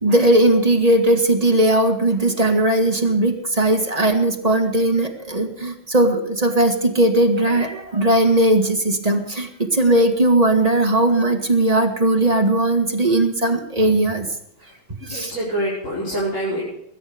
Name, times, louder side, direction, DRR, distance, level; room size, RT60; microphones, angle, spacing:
voice 1, 0.0-14.3 15.0-15.3, right 1 dB, 20° right, 3 dB, 1.6 m, -18 dB
voice 2, 15.0-16.6, right 1 dB, 35° left, -7 dB, 5.7 m, -25 dB
21.0 x 10.5 x 5.2 m, 0.79 s
omnidirectional pair, 2.3 m